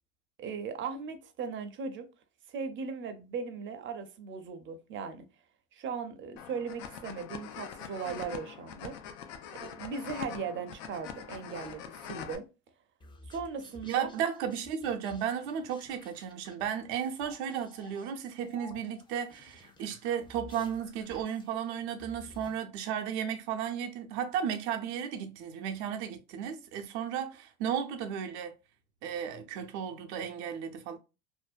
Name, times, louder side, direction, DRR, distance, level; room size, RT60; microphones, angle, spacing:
voice 1, 0.4-2.1 2.5-5.3 5.7-9.0 9.5-12.5 13.3-14.1, right 5 dB, 35° right, 0.6 m, -38 dB
sound 1, 6.4-12.3, left 8 dB, 75° left, 0.5 m, -43 dB
sound 2, 13.0-22.6, left 2 dB, 15° left, 0.4 m, -54 dB
voice 2, 13.9-28.5 29.0-31.0, right 8 dB, 75° right, 0.6 m, -34 dB
2.6 x 2.1 x 2.4 m
supercardioid pair, 100°, 34 cm